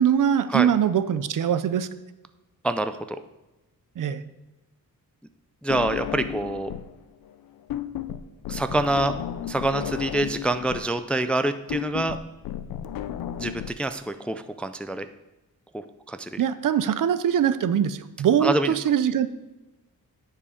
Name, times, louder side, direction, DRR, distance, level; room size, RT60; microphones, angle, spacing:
voice 1, 0.0-1.9 4.0-4.2 16.4-19.3, right 9 dB, 65° right, 13 dB, 0.6 m, -22 dB
voice 2, 2.6-3.0 5.6-6.7 8.5-9.1 9.5-12.2 13.4-15.1 15.7-15.8 16.1-16.4 18.4-18.7, right 2 dB, 5° left, 9 dB, 0.3 m, -26 dB
sound 1, 5.7-7.0 7.2-13.7, left 10 dB, 75° left, 0.5 m, -33 dB
10.0 x 4.7 x 5.0 m, 1.1 s
wide cardioid pair, 105°, 35 cm